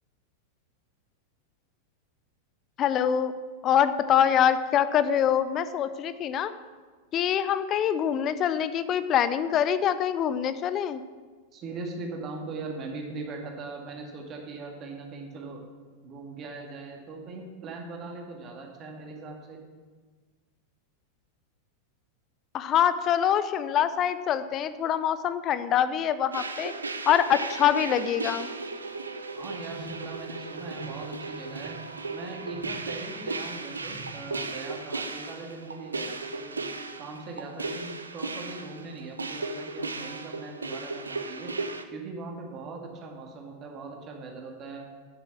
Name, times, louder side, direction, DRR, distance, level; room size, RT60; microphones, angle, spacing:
voice 1, 2.8-3.3 3.6-6.5 7.1-11.0 22.5-26.7 27.1-28.5, left 9 dB, 30° left, 13 dB, 0.6 m, -24 dB
voice 2, 11.5-15.6 16.0-19.6 29.4-31.8 32.1-36.6 37.0-41.5 41.9-44.9, right 3 dB, 30° right, 1 dB, 2.1 m, -40 dB
sound 1, 26.3-41.8, right 3 dB, 75° right, 0.7 m, -36 dB
sound 2, 29.6-30.1 30.6-31.0 31.5-32.0 32.5-32.9 33.8-34.3, right 3 dB, 85° left, 3.9 m, -45 dB
10.5 x 7.4 x 7.2 m, 1.4 s
figure-of-eight pair, 90°, 0 cm